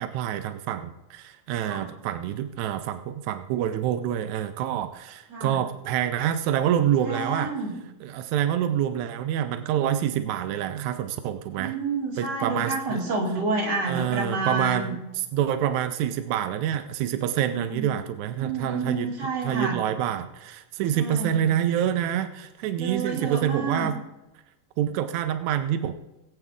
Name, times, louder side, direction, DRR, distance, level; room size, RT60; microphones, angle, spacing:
voice 1, 0.0-7.5 8.0-11.8 12.2-13.0 13.8-19.1 19.4-24.0 24.8-25.9, right 10 dB, 80° right, 9 dB, 1.7 m, -27 dB
voice 2, 7.0-7.7 11.6-14.9 17.4-17.9 18.4-19.8 20.9-21.6 22.8-23.9, right 3 dB, 50° right, -3 dB, 3.8 m, -29 dB
20.5 x 8.0 x 3.6 m, 0.95 s
omnidirectional pair, 4.0 m